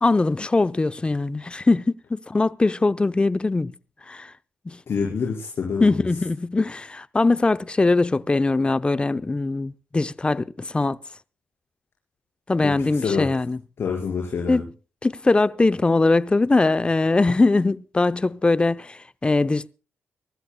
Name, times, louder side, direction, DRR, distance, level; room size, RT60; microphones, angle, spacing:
voice 1, 0.0-3.7 4.1-4.3 4.7-4.8 5.8-11.0 12.5-13.6 14.5-14.7 15.0-19.7, left 3 dB, 25° left, 0.5 m, -21 dB
voice 2, 4.9-6.1 12.6-13.3 13.8-14.6, left 5 dB, 60° left, 4.8 m, -27 dB
24.5 x 13.0 x 2.2 m
supercardioid pair, 60°, 5 cm